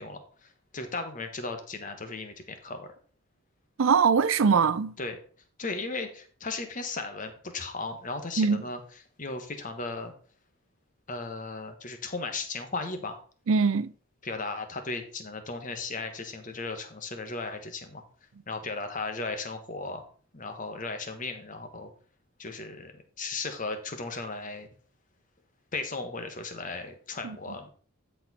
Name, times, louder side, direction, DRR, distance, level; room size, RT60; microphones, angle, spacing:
voice 1, 0.0-2.9 5.0-5.2 5.6-8.8 9.2-10.1 11.1-13.2 14.2-18.0 18.5-20.0 20.3-21.9 22.4-24.7 25.7-27.7, left 3 dB, 35° left, 1.3 m, -36 dB
voice 2, 3.8-4.9 8.4-8.6 13.5-13.9 27.2-27.4, right 5 dB, 65° right, 0.4 m, -22 dB
13.0 x 4.6 x 4.2 m
head